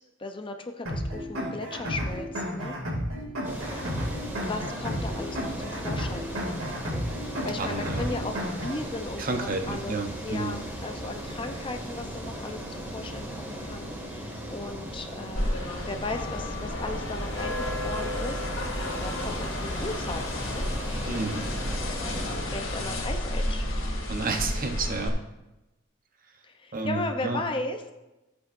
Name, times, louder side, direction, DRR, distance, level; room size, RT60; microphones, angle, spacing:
voice 1, 0.2-2.8 4.4-6.3 7.2-10.0 10.2-15.5 15.9-18.5 19.0-20.7 22.5-23.6 26.4-27.8, left 2 dB, 25° left, 5 dB, 0.6 m, -36 dB
sound 1, 0.9-8.9, equal, 90° right, 2.6 m, -32 dB
sound 2, 3.4-22.4, equal, 10° right, 1.8 m, -38 dB
voice 2, 7.6-8.3 9.2-10.6 21.1-21.5 24.1-25.2 26.7-27.4, right 3 dB, 45° right, 5 dB, 0.9 m, -31 dB
sound 3, 15.4-25.1, left 1 dB, 75° left, 2.4 m, -31 dB
15.0 x 8.1 x 2.6 m, 0.98 s
head